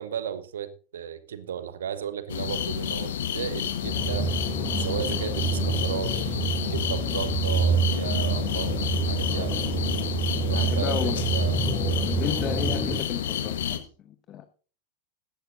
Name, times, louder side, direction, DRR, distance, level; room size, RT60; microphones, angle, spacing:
voice 1, 0.0-4.3 4.8-8.8 9.1-9.8 10.4-11.6, right 9 dB, 65° right, 12 dB, 1.2 m, -35 dB
sound 1, 2.3-13.8, left 9 dB, 60° left, 1.3 m, -30 dB
sound 2, 3.8-13.0, right 4 dB, 10° left, 3.4 m, -27 dB
voice 2, 10.5-11.2 12.0-14.5, left 10 dB, 30° left, 10 dB, 1.0 m, -33 dB
15.5 x 12.0 x 2.6 m, 0.38 s
figure-of-eight pair, 90°, 0 cm